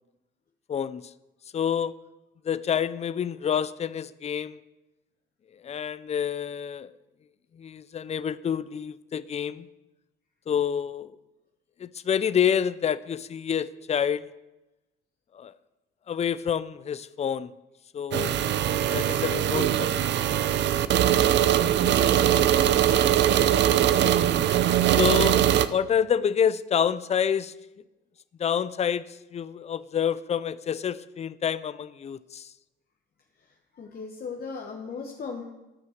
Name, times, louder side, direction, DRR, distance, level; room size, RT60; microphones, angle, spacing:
voice 1, 0.7-1.1 1.5-1.9 2.4-4.6 5.6-6.9 7.5-9.7 10.5-11.2 11.8-14.3 15.3-15.5 16.1-17.5 17.9-18.4 18.9-20.3 22.2-22.6 23.7-24.2 25.0-27.5 28.4-32.5, left 8 dB, 35° left, 16 dB, 0.4 m, -28 dB
sound 1, 18.1-25.7, right 11 dB, 65° right, 0.5 m, -21 dB
voice 2, 22.3-23.1 33.8-35.4, left 5 dB, 50° left, 0 dB, 1.2 m, -38 dB
12.5 x 5.5 x 6.5 m, 1.0 s
cardioid pair, 90°, 20 cm